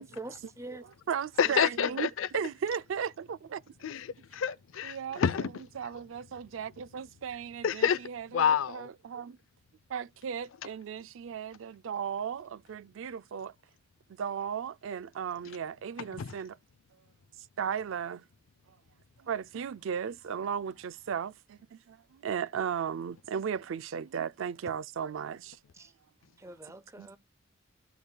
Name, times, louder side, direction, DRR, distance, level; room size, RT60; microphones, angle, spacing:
voice 1, 0.0-0.8 1.5-2.0 25.7-25.9 26.4-27.2, right 2 dB, 15° right, 0.5 m, -45 dB
voice 2, 0.7-2.1 2.3-3.6 4.8-5.2 5.8-9.4 9.9-13.5 14.1-16.6 17.6-18.2 19.2-25.6 27.0-27.1, right 7 dB, 70° right, 0.4 m, -36 dB
voice 3, 1.4-2.3 3.8-5.5 7.6-8.0 8.3-8.9 16.2-16.3, left 7 dB, 70° left, 0.4 m, -28 dB
14.0 x 5.3 x 2.2 m
head